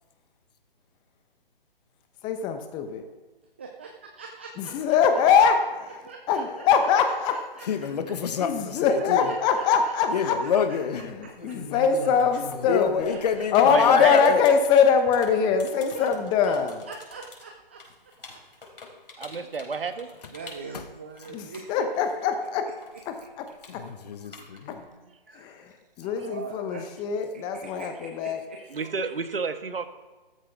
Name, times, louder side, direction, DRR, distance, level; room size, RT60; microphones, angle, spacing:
voice 1, 2.2-3.0 4.6-6.0 6.3-7.4 8.4-10.4 11.0-13.2 13.5-16.8 21.3-22.7 23.1-23.2 23.7-23.8 24.7-24.8 25.3-25.7 26.0-28.4, left 6 dB, 15° left, 7 dB, 0.9 m, -23 dB
voice 2, 3.6-4.7 6.1-6.4 7.0-8.1 9.0-10.5 11.5-11.6 12.8-13.7 15.9-16.1 16.4-16.5 16.9-17.8 18.3-18.4 19.3-19.5 20.3-21.9 24.4-25.2 26.0-26.9 27.3-28.6, right 4 dB, 15° right, 2 dB, 0.4 m, -43 dB
voice 3, 7.7-9.2 10.1-11.0 12.7-14.5 23.7-24.8, left 7 dB, 45° left, 9 dB, 1.4 m, -26 dB
sound 1, 10.0-10.4 11.1-22.5 22.8-24.9, left 3 dB, 70° left, 4.7 m, -44 dB
voice 4, 13.7-14.3 19.2-20.1 25.3-25.4 28.7-29.9, right 4 dB, 75° right, 9 dB, 1.5 m, -30 dB
15.0 x 13.5 x 3.5 m, 1.2 s
figure-of-eight pair, 140°, 29 cm